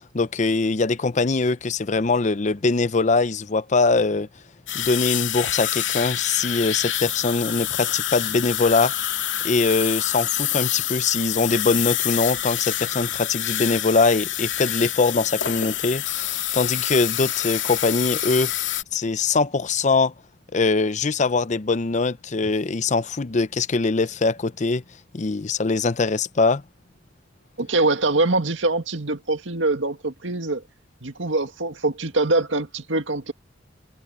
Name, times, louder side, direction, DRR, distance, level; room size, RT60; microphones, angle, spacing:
voice 1, 0.0-4.3 4.7-8.9 9.4-16.3 16.5-18.5 18.9-20.1 20.5-24.8 25.1-26.6, left 3 dB, 40° left, 0.6 m, -22 dB
sound 1, 4.7-18.8, left 12 dB, 85° left, 2.2 m, -27 dB
voice 2, 27.6-30.6 31.0-33.3, right 2 dB, 90° right, 2.0 m, -23 dB
head